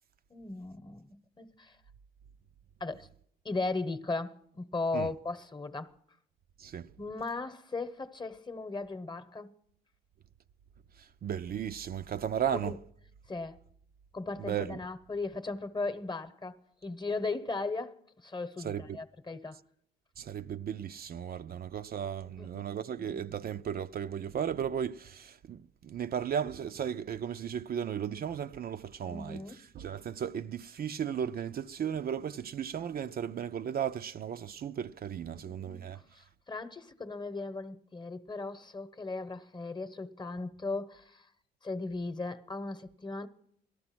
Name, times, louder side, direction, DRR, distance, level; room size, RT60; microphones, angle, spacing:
voice 1, 0.3-1.8 2.8-3.1 3.4-5.9 7.0-9.5 12.5-12.8 13.3-13.6 14.1-19.6 22.2-22.7 23.0-23.2 29.1-29.7 35.2-35.8 36.1-41.3 41.6-43.3, left 3 dB, 20° left, 1.0 m, -37 dB
voice 2, 6.6-6.9 11.0-12.8 14.4-14.8 18.6-19.0 20.2-36.0, right 8 dB, 50° right, 0.5 m, -35 dB
18.0 x 13.0 x 6.1 m
cardioid pair, 90°, 20 cm